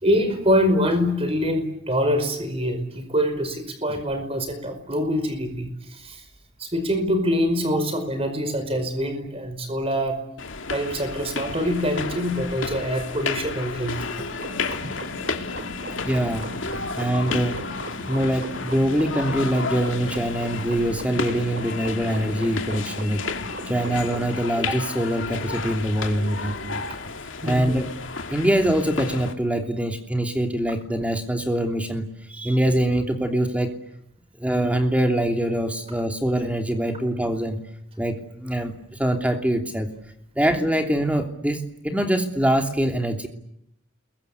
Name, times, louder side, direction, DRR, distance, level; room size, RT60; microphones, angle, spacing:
voice 1, 0.0-6.2 6.6-10.2 10.7-14.0 27.4-27.8, equal, 30° right, 8 dB, 5.1 m, -24 dB
sound 1, 10.4-29.3, left 4 dB, 80° left, 2.6 m, -32 dB
sound 2, 14.3-24.3, right 1 dB, 65° right, 3.9 m, -38 dB
voice 2, 16.0-16.5 17.0-17.6 18.1-23.2 23.7-26.8 27.4-27.9 28.3-33.7 34.4-37.6 38.0-39.9 40.3-43.3, right 1 dB, 5° right, 5 dB, 3.0 m, -24 dB
30.0 x 22.5 x 8.4 m, 0.76 s
head